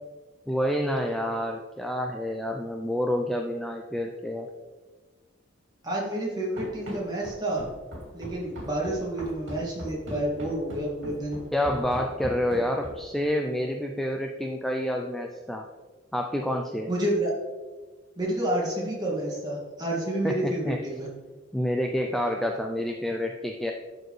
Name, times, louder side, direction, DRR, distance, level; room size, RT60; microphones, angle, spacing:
voice 1, 0.5-4.5 11.5-15.7 16.1-16.9 20.2-20.8 21.5-23.7, equal, ahead, 2 dB, 0.4 m, -28 dB
voice 2, 5.8-7.7 8.1-11.4 16.9-17.3 18.2-21.1, right 1 dB, 20° right, -4 dB, 2.0 m, -29 dB
Run, 6.6-13.2, equal, 65° right, 2.2 m, -39 dB
11.5 x 4.4 x 3.2 m, 1.3 s
head